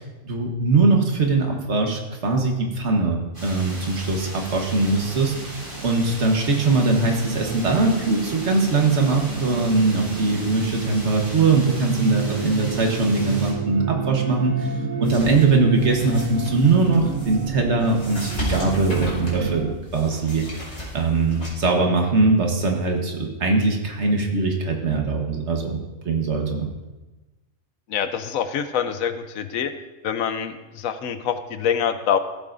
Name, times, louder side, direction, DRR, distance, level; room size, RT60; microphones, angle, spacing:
voice 1, 0.2-5.4 5.8-14.7 15.0-20.6 20.9-25.8 26.0-26.7, right 3 dB, 55° right, 2 dB, 1.5 m, -21 dB
sound 1, 3.3-13.5, equal, 20° right, 2.5 m, -37 dB
sound 2, 4.6-19.8, right 7 dB, 75° right, 1.0 m, -31 dB
sound 3, 15.0-21.5, equal, 50° left, 3.4 m, -35 dB
voice 2, 27.9-29.7 30.0-32.2, left 8 dB, 80° left, 10 dB, 1.1 m, -25 dB
15.5 x 7.4 x 2.6 m, 1.1 s
omnidirectional pair, 1.4 m